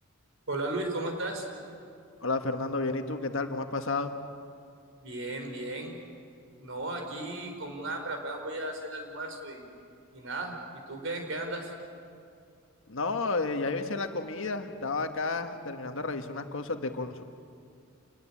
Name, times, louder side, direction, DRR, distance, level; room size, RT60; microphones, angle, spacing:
voice 1, 0.5-1.5 5.0-6.0 6.6-9.7 10.1-11.7, right 2 dB, 60° right, 4 dB, 4.5 m, -35 dB
voice 2, 2.2-4.1 12.9-17.2, left 3 dB, 65° left, 6 dB, 1.6 m, -31 dB
28.0 x 21.0 x 8.7 m, 2.4 s
head